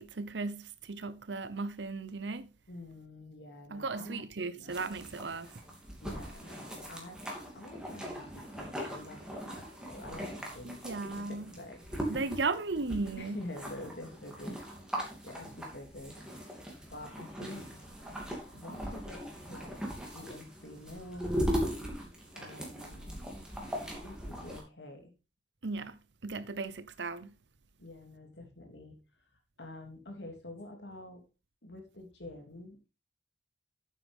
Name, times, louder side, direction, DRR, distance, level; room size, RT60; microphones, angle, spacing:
voice 1, 0.0-2.5 3.7-5.5 10.6-11.4 12.1-13.4 25.6-27.4, right 3 dB, 85° right, 0.8 m, -36 dB
voice 2, 2.7-4.8 6.0-9.2 9.5-10.8 11.1-11.8 12.0-12.2 13.1-14.9 15.2-17.7 18.5-21.6 22.3-23.1 23.9-25.1 27.8-29.3 29.6-31.3 31.6-32.9, left 1 dB, 85° left, 2.8 m, -47 dB
sound 1, 4.7-24.6, equal, 5° right, 2.7 m, -40 dB
9.1 x 8.5 x 3.6 m
head